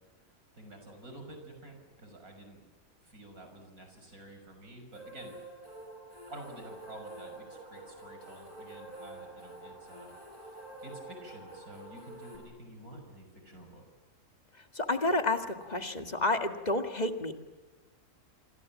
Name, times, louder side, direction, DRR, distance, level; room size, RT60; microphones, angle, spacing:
voice 1, 0.5-2.6 3.0-5.3 6.3-10.1 10.4-13.8, right 1 dB, 90° right, 5 dB, 6.6 m, -50 dB
sound 1, 4.9-12.4, right 2 dB, 35° right, 8.0 m, -48 dB
voice 2, 14.8-17.3, left 2 dB, 30° left, 6 dB, 1.9 m, -30 dB
27.5 x 26.0 x 7.5 m, 1.2 s
omnidirectional pair, 1.5 m